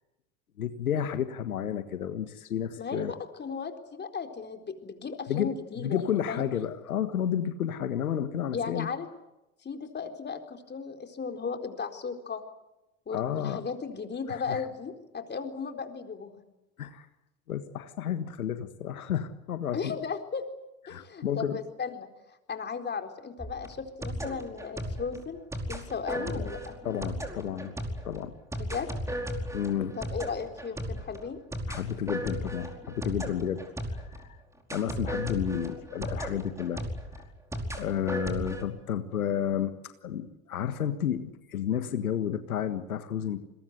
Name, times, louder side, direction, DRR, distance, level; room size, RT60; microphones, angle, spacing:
voice 1, 0.6-3.1 5.3-5.5 5.8-8.9 13.1-13.6 14.3-14.6 16.8-17.1 17.5-19.9 20.9-21.6 26.1-26.5 26.8-27.7 28.0-28.3 29.5-30.0 31.7-33.6 33.9-34.4 34.7-36.8 37.1-37.3 37.8-43.4, left 9 dB, 90° left, 10 dB, 1.6 m, -31 dB
voice 2, 2.8-6.0 6.3-6.5 8.5-9.1 9.6-12.4 13.1-16.4 19.7-20.5 20.9-22.1 22.5-25.4 25.7-26.8 28.6-28.9 29.9-31.4, left 5 dB, 25° left, 6 dB, 4.2 m, -36 dB
sound 1, 23.4-34.3 34.7-38.6, equal, 5° right, 4.8 m, -36 dB
30.0 x 22.0 x 8.2 m, 0.95 s
hypercardioid pair, 90°, 42 cm